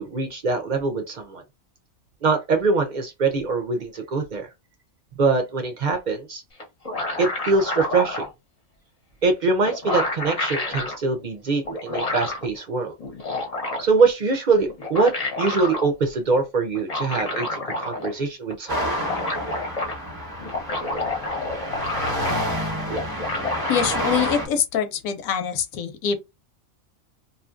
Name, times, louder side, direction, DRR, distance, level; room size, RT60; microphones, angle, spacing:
voice 1, 0.0-1.4 2.2-4.5 5.2-6.4 7.2-8.2 9.2-12.9 13.8-19.0, right 4 dB, 55° right, 0.5 m, -23 dB
sound 1, 6.6-8.3 9.3-9.4 9.6-11.0 11.6-12.5 13.0-14.0 14.7-15.9 16.7-18.2 18.5-18.6 18.8-19.9 20.4-22.5 22.9-23.9, left 2 dB, 40° left, 0.6 m, -29 dB
sound 2, 18.7-24.5, equal, 20° right, 0.8 m, -28 dB
voice 2, 23.7-26.2, left 7 dB, 85° left, 1.0 m, -24 dB
2.6 x 2.4 x 2.4 m
omnidirectional pair, 1.4 m